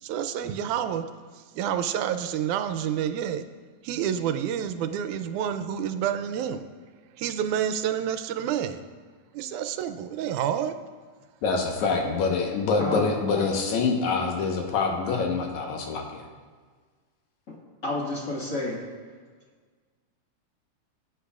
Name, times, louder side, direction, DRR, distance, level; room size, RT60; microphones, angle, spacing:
voice 1, 0.0-1.0 1.4-3.4 3.8-6.6 7.2-8.8 9.3-10.7, right 9 dB, 85° right, 10 dB, 2.0 m, -28 dB
voice 2, 11.4-16.2, left 4 dB, 75° left, 2 dB, 2.4 m, -26 dB
voice 3, 12.8-13.4 17.5-17.6 17.8-18.7, left 2 dB, 35° left, -4 dB, 1.5 m, -30 dB
17.0 x 8.5 x 2.4 m, 1.5 s
omnidirectional pair, 3.5 m